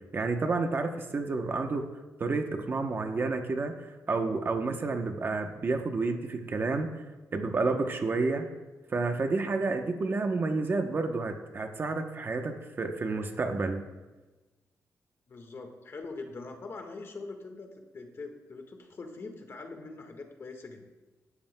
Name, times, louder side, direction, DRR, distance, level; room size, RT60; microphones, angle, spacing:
voice 1, 0.1-1.9 2.2-6.9 7.3-8.5 8.9-13.8, right 3 dB, 35° right, 5 dB, 0.9 m, -30 dB
voice 2, 15.3-17.7 17.9-20.9, left 3 dB, 40° left, 4 dB, 1.5 m, -43 dB
18.0 x 13.0 x 2.2 m, 1.2 s
wide cardioid pair, 165°, 6 cm